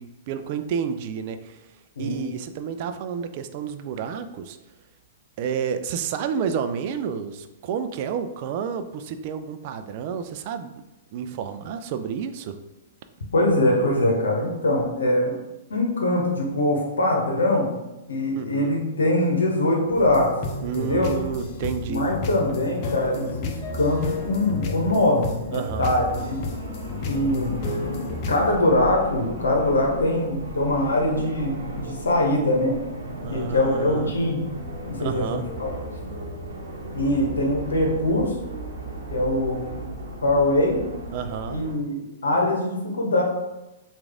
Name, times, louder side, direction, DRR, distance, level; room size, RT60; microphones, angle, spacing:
voice 1, 0.0-1.7 2.0-4.6 5.4-10.8 11.1-12.6 18.4-18.8 20.6-22.1 25.5-25.9 33.2-34.1 35.0-35.5 41.1-41.6, right 7 dB, 50° right, 9 dB, 0.3 m, -30 dB
voice 2, 2.0-2.3 13.3-15.3 15.7-17.7 18.1-20.3 20.7-21.1 21.8-26.5 27.0-27.5 28.3-32.8 33.3-34.4 34.9-35.7 36.9-38.4 39.1-39.6 40.2-40.8 41.5-42.0 42.2-43.2, left 1 dB, 85° left, 0 dB, 0.9 m, -23 dB
sound 1, 20.0-28.5, left 3 dB, 45° left, 0.6 m, -32 dB
sound 2, 25.8-41.7, equal, 80° right, 0.9 m, -35 dB
3.1 x 2.4 x 3.6 m, 0.97 s
hypercardioid pair, 120°, 0 cm